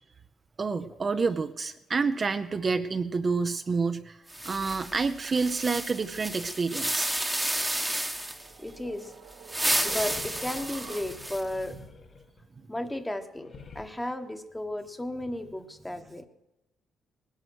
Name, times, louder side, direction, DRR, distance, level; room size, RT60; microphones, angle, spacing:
voice 1, 0.6-7.1 9.8-9.9, right 4 dB, 35° right, 8 dB, 0.6 m, -28 dB
sound 1, 4.3-8.5 9.3-11.6, right 1 dB, 5° right, 1.1 m, -31 dB
sound 2, 7.8-11.5, right 8 dB, 85° right, 1.3 m, -49 dB
voice 2, 8.5-9.2 9.6-11.7 12.7-16.3, left 1 dB, 10° left, 8 dB, 1.2 m, -34 dB
sound 3, 9.7-12.7 13.3-13.9, left 4 dB, 50° left, 1.7 m, -48 dB
19.5 x 11.5 x 6.3 m, 0.90 s
cardioid pair, 90°, 0 cm